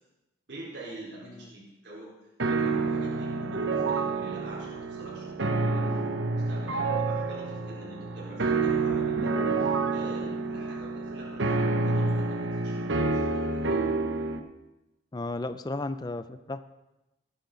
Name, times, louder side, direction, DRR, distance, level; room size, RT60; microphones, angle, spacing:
voice 1, 0.5-2.1 2.5-13.8, right 1 dB, 70° right, -7 dB, 4.4 m, -46 dB
sound 1, 2.4-14.4, right 3 dB, 85° right, 1.0 m, -28 dB
voice 2, 15.1-16.6, left 2 dB, 20° left, 11 dB, 0.4 m, -34 dB
18.5 x 10.0 x 3.9 m, 0.98 s
head